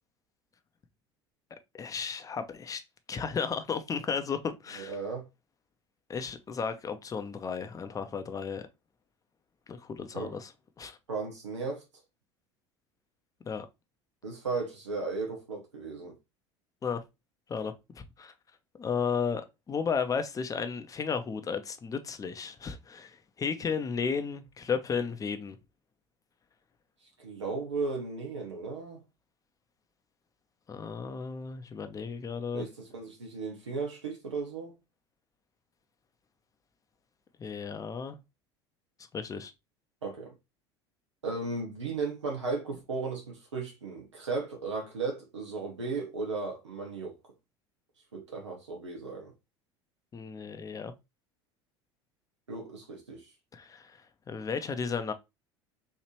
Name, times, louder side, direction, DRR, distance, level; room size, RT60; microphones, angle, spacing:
voice 1, 1.7-2.8 3.1-5.0 6.1-8.7 9.7-10.5 10.8-11.0 13.5-13.7 16.8-17.0 17.5-18.3 18.8-25.6 30.7-32.6 37.4-38.2 39.1-39.5 50.1-50.9 53.5-54.0 54.3-55.1, left 6 dB, 25° left, 0.7 m, -34 dB
voice 2, 4.8-5.3 10.1-10.4 11.1-11.8 14.2-16.1 27.2-29.0 32.5-34.7 40.0-40.3 41.2-47.1 48.1-49.3 52.5-53.3, right 4 dB, 80° right, 1.0 m, -35 dB
4.4 x 2.8 x 3.1 m
figure-of-eight pair, 70°, 15 cm